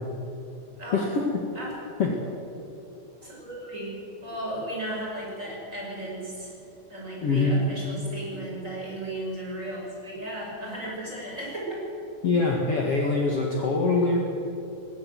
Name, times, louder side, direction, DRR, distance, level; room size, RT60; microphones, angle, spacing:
voice 1, 0.9-1.2 2.0-2.1 7.2-7.6 12.2-14.2, left 3 dB, 60° left, -1 dB, 1.5 m, -23 dB
voice 2, 3.2-6.5 6.9-11.9, right 1 dB, 15° right, -3 dB, 5.5 m, -35 dB
21.0 x 16.5 x 7.8 m, 2.8 s
omnidirectional pair, 5.8 m